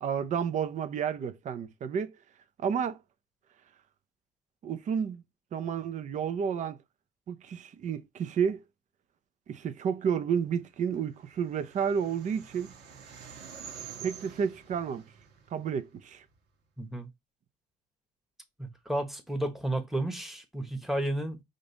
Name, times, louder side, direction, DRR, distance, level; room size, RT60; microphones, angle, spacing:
voice 1, 0.0-2.1 2.6-3.0 4.6-5.2 5.5-6.8 7.3-8.6 9.5-12.7 14.0-15.0 15.5-16.2, right 7 dB, 45° right, 0.6 m, -31 dB
sound 1, 10.9-16.4, right 7 dB, 80° right, 1.2 m, -48 dB
voice 2, 16.8-17.1 18.6-21.4, right 1 dB, ahead, 1.2 m, -32 dB
5.2 x 2.6 x 3.9 m
cardioid pair, 110°, 17 cm